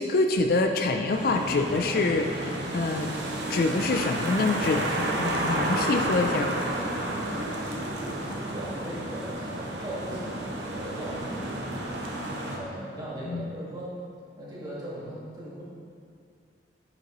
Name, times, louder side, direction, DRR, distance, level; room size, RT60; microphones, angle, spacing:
voice 1, 0.0-3.2 3.5-6.6 13.3-13.5, left 3 dB, 55° left, 5 dB, 0.4 m, -26 dB
sound 1, 1.1-12.6, right 1 dB, 70° right, 0.9 m, -31 dB
voice 2, 6.6-11.9 12.4-14.0 14.4-15.6, right 1 dB, 20° right, -8 dB, 1.7 m, -38 dB
8.8 x 5.7 x 3.0 m, 2.3 s
head